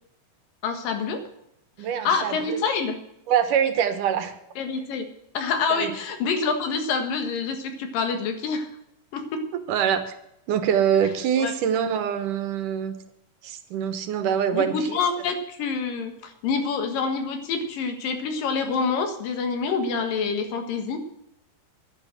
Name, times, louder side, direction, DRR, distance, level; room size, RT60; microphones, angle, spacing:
voice 1, 0.6-1.2 2.0-3.0 4.6-5.1 5.3-8.7 9.1-9.4 11.4-11.5 14.5-21.0, left 5 dB, 80° left, 7 dB, 3.4 m, -27 dB
voice 2, 1.8-2.4 3.3-4.3 5.7-5.9 9.7-10.1 10.5-13.0 13.4-15.0, right 8 dB, 75° right, 9 dB, 2.7 m, -24 dB
11.0 x 10.0 x 7.7 m, 0.79 s
omnidirectional pair, 3.9 m